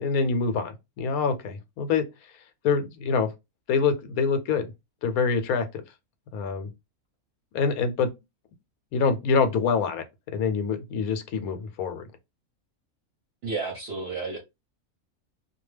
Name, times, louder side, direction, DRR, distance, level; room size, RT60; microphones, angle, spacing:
voice 1, 0.0-2.0 2.6-3.3 3.7-4.7 5.0-5.7 6.3-6.7 7.5-8.1 8.9-10.0 10.3-12.0, left 5 dB, 75° left, 1.0 m, -25 dB
voice 2, 13.4-14.4, right 4 dB, 55° right, 0.8 m, -31 dB
2.4 x 2.2 x 3.1 m
omnidirectional pair, 1.5 m